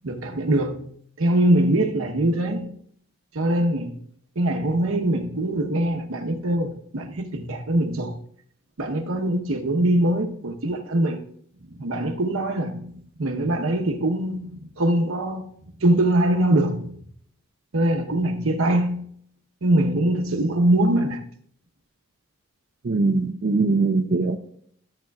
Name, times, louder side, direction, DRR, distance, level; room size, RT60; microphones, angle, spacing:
voice 1, 0.0-0.9 1.2-2.8 3.3-4.0 4.4-8.2 8.8-11.2 11.7-17.0 17.7-19.1 19.6-21.3, right 1 dB, 75° right, 1.0 m, -23 dB
voice 2, 22.8-24.4, right 3 dB, 45° right, 0.5 m, -21 dB
13.0 x 7.5 x 2.3 m
head